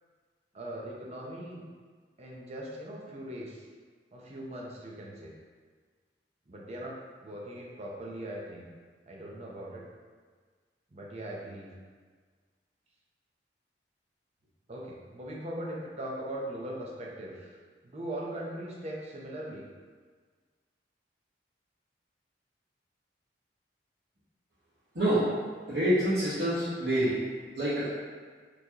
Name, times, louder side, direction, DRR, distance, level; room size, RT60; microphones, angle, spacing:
voice 1, 0.5-1.6 2.2-3.6 4.1-5.3 6.5-8.7 9.1-9.8 10.9-11.7 14.7-17.6 17.8-19.7, right 1 dB, 40° right, -3 dB, 0.7 m, -40 dB
voice 2, 25.7-27.1 27.5-27.9, right 1 dB, 65° right, -15 dB, 1.3 m, -26 dB
4.4 x 3.2 x 2.9 m, 1.6 s
head